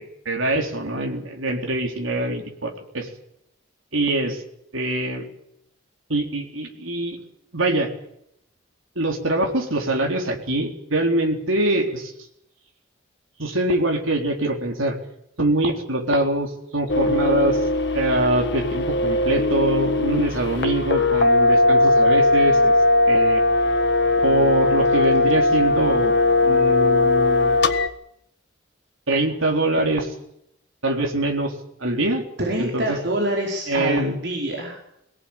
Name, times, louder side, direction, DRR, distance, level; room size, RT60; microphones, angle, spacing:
voice 1, 0.0-3.1 3.9-4.4 4.7-5.2 6.1-7.2 7.5-7.9 9.0-12.1 13.4-15.0 15.4-17.6 17.9-22.7 23.1-23.4 24.2-26.1 26.4-27.6 29.1-30.1 30.8-31.5 31.8-32.2 32.6-33.0 33.7-34.2, right 1 dB, 90° right, 2 dB, 4.1 m, -23 dB
sound 1, 16.9-27.9, left 2 dB, 55° left, 1.6 m, -19 dB
voice 2, 32.4-34.8, right 1 dB, 60° right, -1 dB, 5.0 m, -25 dB
23.5 x 18.0 x 8.9 m, 0.76 s
head